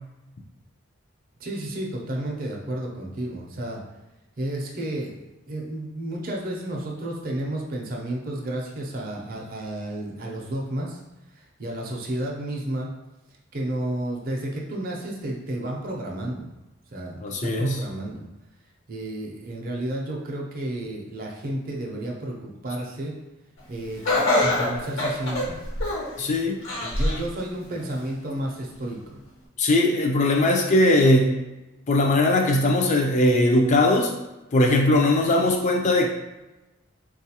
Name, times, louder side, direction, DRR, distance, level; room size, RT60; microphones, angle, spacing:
voice 1, 1.4-3.8 4.4-5.1 5.5-11.0 11.3-12.9 13.5-16.5 16.9-18.3 18.9-23.1 23.7-24.0 24.4-25.6 26.8-29.2, right 1 dB, 45° right, -1 dB, 0.5 m, -31 dB
voice 2, 17.2-17.8 26.2-26.6 29.6-31.3 31.9-34.1 34.5-36.1, left 1 dB, 35° left, 2 dB, 0.4 m, -20 dB
Laughter, 24.0-26.2 26.6-27.3 27.8-27.9 28.8-28.9, left 1 dB, 75° left, 1.1 m, -24 dB
3.8 x 2.4 x 2.8 m, 1.0 s
head